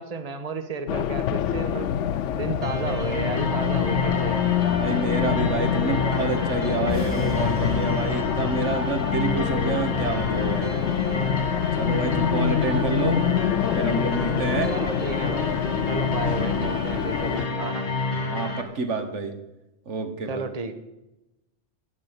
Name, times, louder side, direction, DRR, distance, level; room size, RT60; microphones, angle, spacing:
voice 1, 0.0-2.0 2.3-4.5 14.7-15.5 15.9-17.9 20.3-20.7, right 4 dB, 35° right, 9 dB, 1.1 m, -32 dB
Race car auto racing, 0.9-17.5, left 10 dB, 90° left, 0.9 m, -26 dB
sound 1, 2.6-18.6, left 2 dB, 55° left, 2.1 m, -29 dB
voice 2, 4.7-10.8 11.7-13.3 13.8-14.7 18.3-19.4 19.9-20.4, right 3 dB, 85° right, 7 dB, 1.6 m, -28 dB
sound 2, 6.9-9.1, equal, 10° left, 1.8 m, -37 dB
14.5 x 5.5 x 9.7 m, 0.95 s
omnidirectional pair, 1.2 m